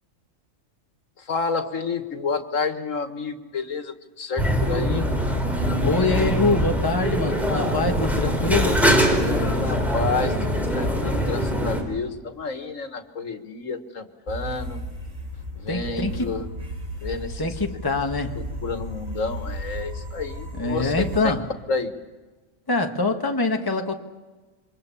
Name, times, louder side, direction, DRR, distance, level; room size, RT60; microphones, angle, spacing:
voice 1, 1.3-5.1 9.3-14.8 15.6-16.5 17.0-17.5 18.4-21.3 21.7-21.9, left 4 dB, 80° left, 2.0 m, -30 dB
sound 1, 4.4-11.8, equal, ahead, 4.6 m, -23 dB
voice 2, 5.8-8.8 15.7-16.3 17.4-18.4 20.5-21.5 22.7-23.9, left 3 dB, 15° left, 1.5 m, -24 dB
sound 2, 14.3-21.2, right 1 dB, 90° right, 5.2 m, -34 dB
27.5 x 24.0 x 7.1 m
omnidirectional pair, 1.3 m